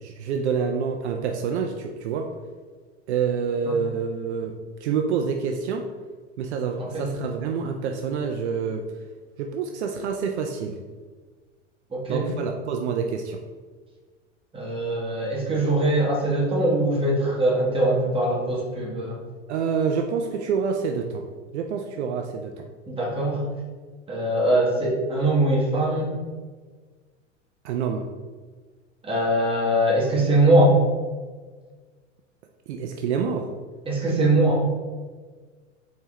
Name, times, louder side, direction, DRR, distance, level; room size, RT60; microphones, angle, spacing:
voice 1, 0.0-2.3 3.1-5.9 6.4-8.9 9.4-10.8 12.1-13.4 19.5-21.3 21.5-22.7 27.6-28.1 32.7-33.5, right 6 dB, 65° right, 4 dB, 0.5 m, -27 dB
voice 2, 6.8-7.1 11.9-12.3 14.5-19.2 22.9-23.4 24.1-26.1 29.0-30.8 33.9-34.7, right 1 dB, 15° right, -4 dB, 1.5 m, -22 dB
4.4 x 3.8 x 3.2 m, 1.4 s
hypercardioid pair, 90°, 36 cm